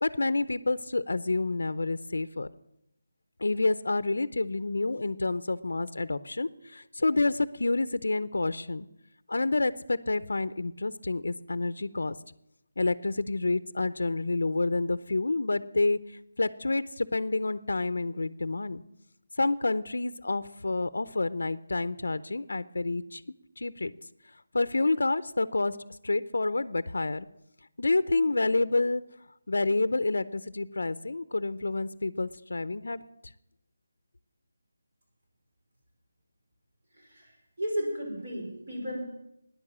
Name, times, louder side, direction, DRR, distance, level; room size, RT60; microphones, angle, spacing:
voice 1, 0.0-2.5 3.4-8.9 9.3-12.1 12.8-16.0 16.4-18.8 19.4-23.2 23.6-23.9 24.5-25.8 26.0-27.3 27.8-29.0 29.5-33.0, left 3 dB, 75° left, 15 dB, 0.7 m, -28 dB
voice 2, 37.0-39.0, equal, 35° right, -1 dB, 5.3 m, -34 dB
16.0 x 10.5 x 7.4 m, 0.84 s
figure-of-eight pair, 180°, 0 cm